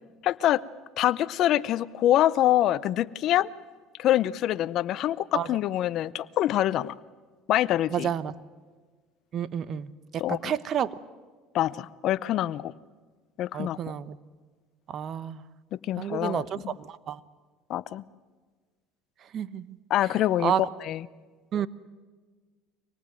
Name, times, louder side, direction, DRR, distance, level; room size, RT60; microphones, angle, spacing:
voice 1, 0.2-0.6 1.0-3.5 4.0-6.9 7.5-8.1 10.2-10.5 11.5-12.7 13.4-13.8 15.9-16.8 17.7-18.0 19.9-20.5 20.8-21.1, left 13 dB, 55° left, 16 dB, 0.7 m, -25 dB
voice 2, 7.9-8.3 9.3-11.0 13.5-14.2 14.9-15.4 16.0-17.2 19.3-19.8 20.4-20.6 21.5-21.7, right 9 dB, 45° right, 17 dB, 1.0 m, -30 dB
24.5 x 19.0 x 9.2 m, 1.4 s
supercardioid pair, 100°, 0 cm